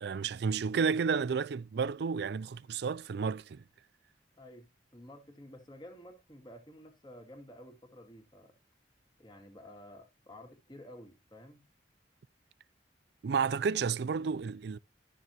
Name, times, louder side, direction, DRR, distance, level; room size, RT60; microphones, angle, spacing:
voice 1, 0.0-3.6 13.2-14.8, right 5 dB, 65° right, 0.4 m, -31 dB
voice 2, 4.9-8.5 9.2-11.6, left 1 dB, 25° left, 2.3 m, -52 dB
12.5 x 6.7 x 3.0 m
head